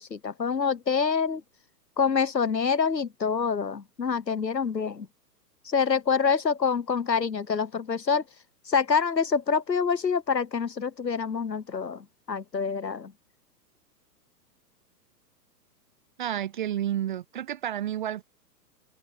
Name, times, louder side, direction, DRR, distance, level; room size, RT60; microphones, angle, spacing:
voice 1, 0.0-1.4 2.0-5.1 5.6-8.2 8.7-13.1, left 5 dB, 85° left, 1.2 m, -26 dB
voice 2, 16.2-18.2, right 11 dB, 30° right, 0.5 m, -30 dB
figure-of-eight pair, 115°, 49 cm